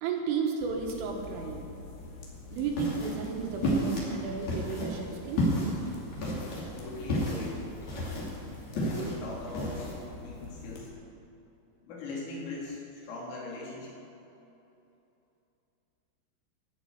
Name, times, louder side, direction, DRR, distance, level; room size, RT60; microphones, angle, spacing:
voice 1, 0.0-1.7 2.5-5.4, right 5 dB, 75° right, 1 dB, 3.8 m, -33 dB
sound 1, 0.6-10.9, left 2 dB, 55° left, 3.0 m, -45 dB
sound 2, 2.5-9.9, equal, 40° left, 3.3 m, -32 dB
voice 2, 6.8-7.7 8.7-9.9 10.2-10.9 11.8-14.0, left 2 dB, 75° left, -4 dB, 5.2 m, -40 dB
14.0 x 7.1 x 9.2 m, 2.8 s
omnidirectional pair, 6.0 m